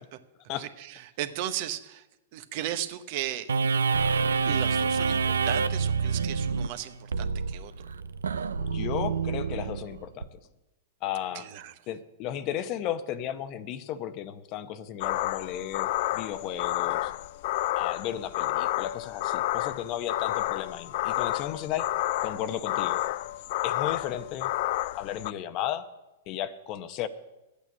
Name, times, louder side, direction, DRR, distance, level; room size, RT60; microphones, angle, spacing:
voice 1, 0.6-2.1 2.3-3.6 4.4-7.7 11.3-11.7, right 12 dB, 55° right, 11 dB, 1.0 m, -36 dB
sound 1, 3.5-10.3, right 5 dB, 85° right, 0.5 m, -27 dB
voice 2, 8.7-10.3 11.0-11.5 11.9-17.1 17.7-21.9 22.2-23.0 23.6-24.5 24.9-25.8 26.3-27.1, left 11 dB, 40° left, 12 dB, 0.8 m, -34 dB
sound 2, 15.0-25.3, left 16 dB, 55° left, 0.3 m, -30 dB
10.5 x 8.5 x 7.3 m, 0.99 s
hypercardioid pair, 120°, 0 cm